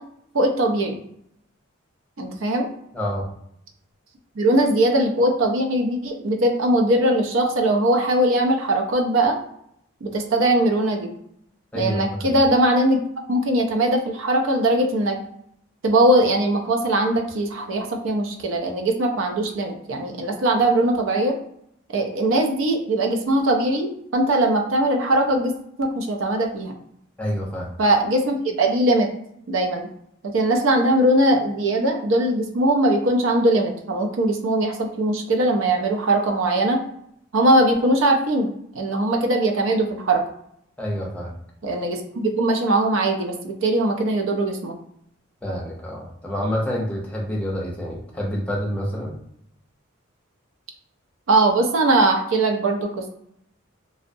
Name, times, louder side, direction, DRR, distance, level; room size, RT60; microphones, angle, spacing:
voice 1, 0.3-1.0 2.2-2.7 4.4-9.4 10.0-11.1 11.7-13.0 13.3-15.2 15.8-21.3 21.9-25.5 25.8-26.7 27.8-29.1 29.5-29.9 30.3-36.8 37.3-38.5 38.8-40.2 41.6-44.8 51.3-52.9, right 1 dB, 70° right, 3 dB, 0.5 m, -20 dB
voice 2, 2.9-3.3 11.7-12.4 27.2-27.7 40.8-41.4 45.4-49.2, equal, 5° left, -2 dB, 0.5 m, -28 dB
2.6 x 2.0 x 2.6 m, 0.72 s
head